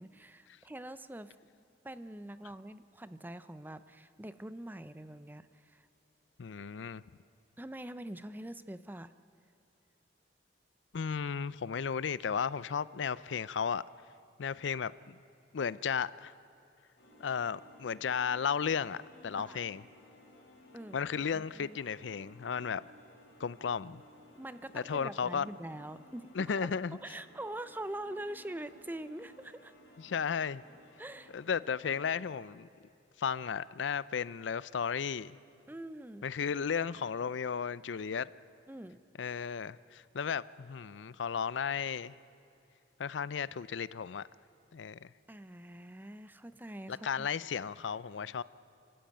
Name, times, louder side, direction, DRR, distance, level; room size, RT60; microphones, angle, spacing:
voice 1, 0.0-1.4 1.8-5.9 7.6-9.1 19.4-19.6 20.7-21.0 21.3-21.8 24.4-26.7 27.0-29.7 31.0-31.3 35.7-36.3 38.7-39.0 45.3-47.3, right 1 dB, 10° right, 13 dB, 0.6 m, -44 dB
voice 2, 6.4-7.0 10.9-13.8 14.4-15.2 15.5-16.3 17.2-19.0 19.2-19.8 20.9-22.8 23.4-24.0 24.7-25.5 26.3-27.0 30.0-30.6 31.3-32.7 33.2-35.4 36.2-38.3 39.2-42.1 43.0-44.2 44.7-45.1 46.9-48.4, left 6 dB, 90° left, 18 dB, 0.5 m, -34 dB
sound 1, 17.0-32.4, left 1 dB, 65° left, 3.5 m, -58 dB
28.5 x 13.5 x 9.0 m, 2.6 s
head